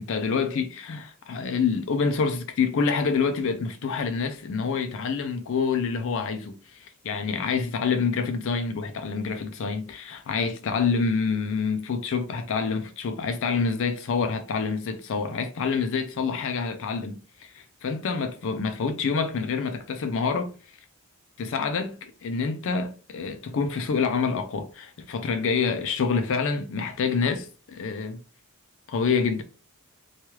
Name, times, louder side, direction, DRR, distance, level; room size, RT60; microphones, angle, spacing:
voice 1, 0.0-20.5 21.4-28.2 28.9-29.4, left 5 dB, 60° left, 0.4 m, -27 dB
3.0 x 2.3 x 3.0 m
head